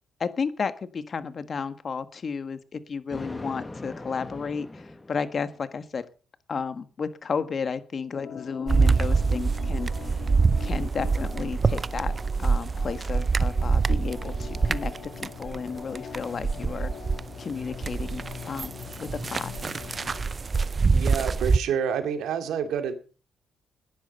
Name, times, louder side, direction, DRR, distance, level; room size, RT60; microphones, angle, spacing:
voice 1, 0.2-6.0 6.5-10.2 10.6-16.9 17.4-19.6, left 5 dB, 45° left, 11 dB, 1.5 m, -33 dB
Thunder, 3.1-5.6, left 2 dB, 15° left, 1.4 m, -40 dB
Organ, 8.1-20.3, left 7 dB, 70° left, 2.7 m, -42 dB
sound 1, 8.7-17.3 17.6-21.6, right 4 dB, 35° right, 0.6 m, -25 dB
voice 2, 20.9-22.9, right 7 dB, 80° right, 7 dB, 2.5 m, -28 dB
14.5 x 10.5 x 5.6 m, 0.38 s
cardioid pair, 85°, 0 cm